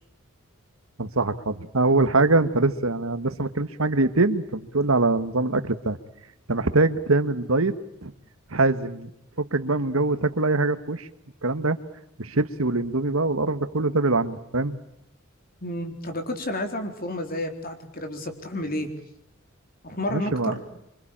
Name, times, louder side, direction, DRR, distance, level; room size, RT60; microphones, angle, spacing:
voice 1, 1.0-6.0 6.5-7.7 8.0-8.1 8.5-9.1 9.4-11.1 11.4-11.8 12.2-14.8 20.1-20.6, right 2 dB, 75° right, 11 dB, 1.6 m, -23 dB
voice 2, 15.6-18.9 19.8-20.6, left 1 dB, 45° left, 6 dB, 4.1 m, -31 dB
26.5 x 25.5 x 8.9 m, 0.77 s
head